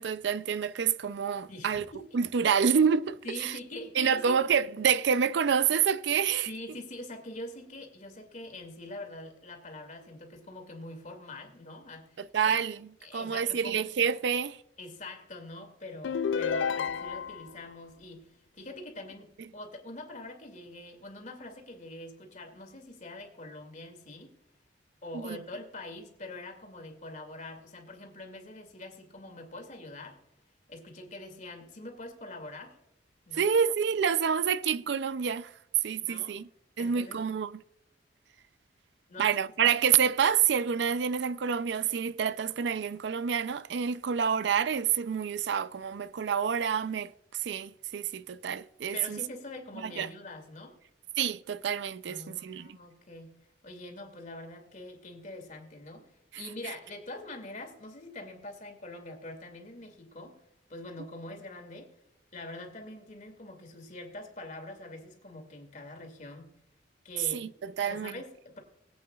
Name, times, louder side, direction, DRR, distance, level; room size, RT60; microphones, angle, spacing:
voice 1, 0.0-1.8 2.1-3.5 4.0-6.5 12.2-14.6 25.2-25.4 33.4-35.5 35.8-36.5 36.8-37.5 39.2-47.1 47.4-49.2 49.8-50.1 51.2-52.8 67.3-68.1, right 7 dB, 70° right, 0.4 m, -28 dB
voice 2, 1.5-2.2 3.2-4.4 6.5-12.6 13.0-13.8 14.8-24.3 25.0-30.2 30.7-32.8 33.3-33.5 36.0-36.4 36.8-37.3 39.1-39.3 48.9-50.7 52.1-53.3 53.6-56.1 56.4-60.4 60.7-61.9 62.3-66.5 67.0-67.5 67.8-68.6, left 2 dB, 45° left, 2.3 m, -44 dB
sound 1, 16.0-17.5, left 6 dB, 90° left, 0.4 m, -30 dB
21.5 x 8.5 x 2.3 m
head